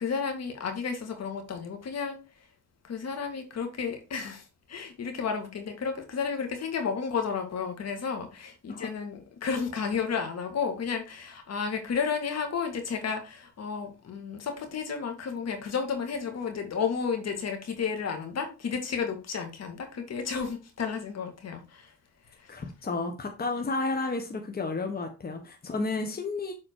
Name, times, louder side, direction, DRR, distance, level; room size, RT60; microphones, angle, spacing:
voice 1, 0.0-2.5 2.8-21.9 22.2-22.5, left 6 dB, 55° left, 6 dB, 2.1 m, -32 dB
voice 2, 22.5-26.5, left 3 dB, 30° left, 4 dB, 1.4 m, -32 dB
7.7 x 4.3 x 4.7 m, 0.29 s
cardioid pair, 90°, 30 cm